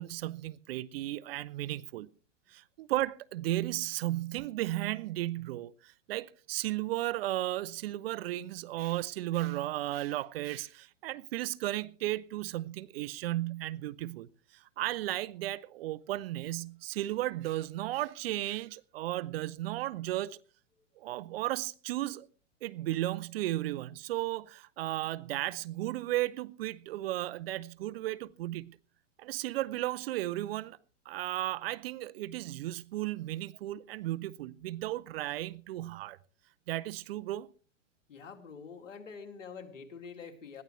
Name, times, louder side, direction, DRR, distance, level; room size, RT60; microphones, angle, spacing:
voice 1, 0.0-2.1 2.5-20.4 21.0-22.3 22.6-28.8 29.2-30.8 31.1-36.2 36.7-37.5, right 16 dB, 50° right, 0.7 m, -35 dB
voice 2, 38.1-40.6, left 5 dB, 85° left, 2.5 m, -46 dB
20.5 x 14.0 x 3.1 m
hypercardioid pair, 130°, 37 cm